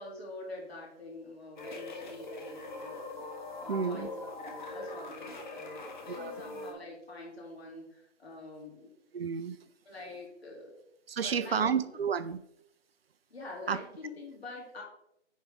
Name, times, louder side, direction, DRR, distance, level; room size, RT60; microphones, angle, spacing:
voice 1, 0.0-3.3 3.6-8.9 9.8-10.7 11.2-11.7 13.3-14.8, left 2 dB, 60° left, -2 dB, 3.3 m, -46 dB
sound 1, 1.6-6.7, left 2 dB, 40° left, 1.5 m, -42 dB
voice 2, 3.7-4.1 6.1-6.3 9.1-9.6 11.1-12.4 13.7-13.8, right 6 dB, 55° right, 13 dB, 0.5 m, -31 dB
9.4 x 4.9 x 3.7 m, 0.77 s
figure-of-eight pair, 165°, 35 cm